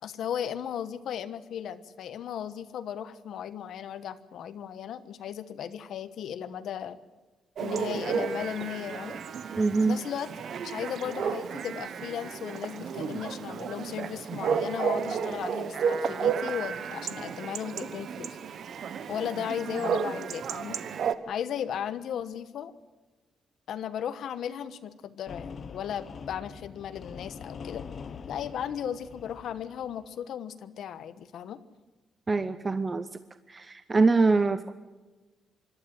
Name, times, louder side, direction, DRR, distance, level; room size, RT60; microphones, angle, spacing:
voice 1, 0.0-7.0 7.6-9.2 9.9-10.3 10.6-18.4 19.1-20.8 21.3-22.7 23.7-27.8 28.3-31.6, left 9 dB, 65° left, 12 dB, 1.2 m, -36 dB
Chatter / Bark / Livestock farm animals working animals, 7.6-21.2, right 6 dB, 50° right, 1.0 m, -32 dB
voice 2, 9.6-10.0 32.3-33.1 33.5-34.7, right 3 dB, 20° right, 12 dB, 0.6 m, -24 dB
sound 1, 25.3-30.1, left 6 dB, 35° left, 0.8 m, -43 dB
25.5 x 12.5 x 9.4 m, 1.2 s
cardioid pair, 180°, 0 cm